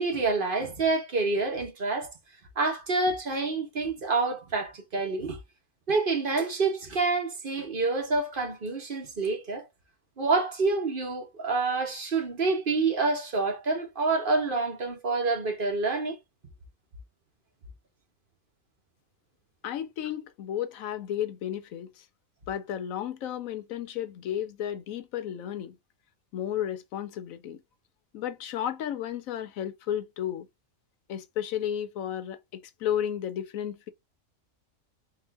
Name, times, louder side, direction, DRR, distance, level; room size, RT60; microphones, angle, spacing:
voice 1, 0.0-2.1 2.6-5.4 5.9-9.6 10.2-16.2, right 3 dB, 40° right, 1.1 m, -27 dB
voice 2, 19.6-22.0 22.5-25.7 26.3-27.6 28.1-30.5 31.1-33.9, left 10 dB, 75° left, 1.1 m, -33 dB
3.8 x 2.4 x 4.5 m
omnidirectional pair, 1.5 m